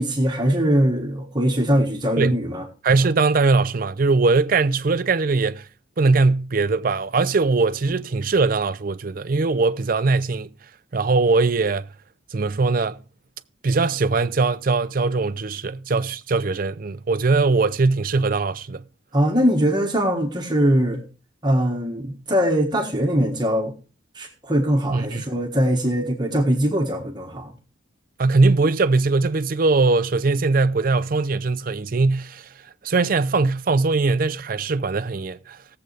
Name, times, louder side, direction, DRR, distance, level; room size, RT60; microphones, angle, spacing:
voice 1, 0.0-2.6 19.1-21.0 21.4-23.7 24.1-27.5, equal, 20° right, 1.5 m, -21 dB
voice 2, 2.8-5.7 6.0-10.5 10.9-11.9 12.3-13.0 13.6-18.8 24.9-25.2 28.2-32.5 32.8-35.6, right 3 dB, 45° right, 0.5 m, -21 dB
18.0 x 7.7 x 3.3 m
head